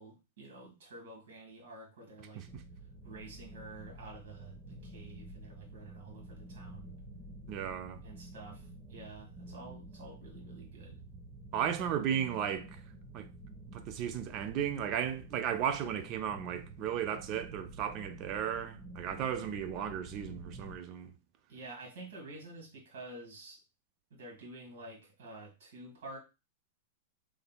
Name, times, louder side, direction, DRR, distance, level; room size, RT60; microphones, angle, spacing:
voice 1, 0.0-2.5 3.0-6.9 8.0-11.0 21.5-23.6 24.1-26.2, right 2 dB, 70° right, 1.6 m, -49 dB
sound 1, 2.5-20.8, right 2 dB, 10° right, 1.0 m, -50 dB
voice 2, 7.5-8.0 11.5-12.8 13.1-13.3 13.7-21.1, right 9 dB, 35° right, 0.4 m, -35 dB
3.7 x 3.2 x 2.2 m
supercardioid pair, 150°, 0 cm